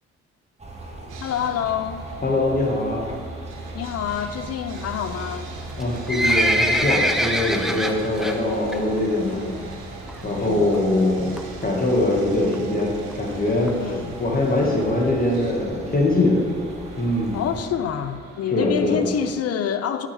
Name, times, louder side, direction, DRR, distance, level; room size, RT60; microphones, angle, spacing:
sound 1, 0.6-17.7, right 2 dB, 20° right, 1.7 m, -39 dB
Sawing, 1.1-19.4, right 4 dB, 65° right, 1.0 m, -42 dB
voice 1, 1.2-2.1 3.7-5.5 9.2-9.7 10.3-10.7 13.8-14.1 17.3-20.1, left 8 dB, 50° left, 0.5 m, -27 dB
voice 2, 2.2-3.0 5.8-9.5 10.2-11.3 11.6-13.8 14.2-16.4 17.0-17.4 18.5-19.0, left 2 dB, 25° left, 2.0 m, -22 dB
Livestock farm animals working animals, 5.7-8.4 8.7-9.0 9.3-9.4 10.1-10.2 10.5-10.6 10.7-10.8 11.4-11.6 12.2-12.3 12.5-12.6 12.8-12.9 13.1-13.2 13.7-13.8 14.3-14.4 14.8-14.9, equal, ahead, 0.7 m, -23 dB
8.3 x 7.2 x 3.6 m
hypercardioid pair, 45°, 32 cm